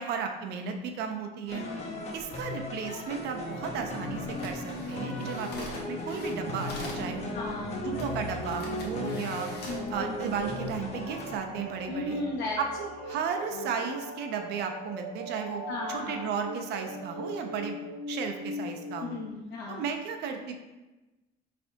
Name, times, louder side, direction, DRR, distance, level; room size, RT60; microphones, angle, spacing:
voice 1, 0.0-1.6 2.1-7.3 7.8-9.5 9.9-12.2 12.6-15.6 15.9-17.8 18.1-19.2 19.7-20.5, right 6 dB, 75° right, 4 dB, 0.6 m, -34 dB
voice 2, 1.5-2.2 7.3-7.8 9.7-10.3 11.9-12.6 13.5-13.8 15.7-16.4 19.0-19.9, left 2 dB, 85° left, -3 dB, 0.6 m, -36 dB
sound 1, 1.5-11.4, left 2 dB, 40° left, 0.7 m, -38 dB
sound 2, 3.1-19.3, right 1 dB, 50° right, 0.9 m, -40 dB
sound 3, 4.3-7.1 8.0-8.1 8.4-9.9 10.4-10.7, left 2 dB, 70° left, 1.0 m, -44 dB
4.9 x 3.3 x 2.7 m, 1.1 s
cardioid pair, 110°, 17 cm